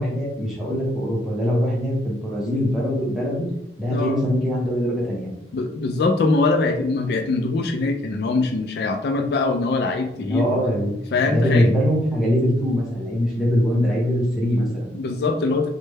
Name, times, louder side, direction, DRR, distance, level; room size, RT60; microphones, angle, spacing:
voice 1, 0.0-3.5 3.8-5.3 10.2-10.9 11.3-14.9, equal, ahead, -6 dB, 0.8 m, -22 dB
voice 2, 5.5-10.6 11.1-11.7 14.9-15.7, left 3 dB, 60° left, 4 dB, 0.3 m, -22 dB
3.2 x 2.1 x 3.3 m, 0.81 s
head